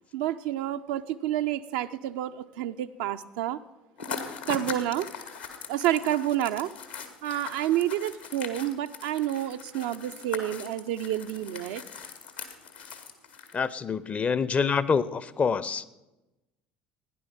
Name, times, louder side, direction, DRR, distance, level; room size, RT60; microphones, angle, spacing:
voice 1, 0.1-3.6 4.5-5.1 5.7-6.7 7.2-11.8, right 12 dB, 65° right, 8 dB, 0.5 m, -29 dB
sound 1, 4.0-13.7, left 6 dB, 75° left, 1.5 m, -40 dB
voice 2, 13.5-15.9, left 5 dB, 30° left, 18 dB, 0.6 m, -26 dB
16.5 x 10.5 x 5.8 m, 1.0 s
figure-of-eight pair, 60°, 5 cm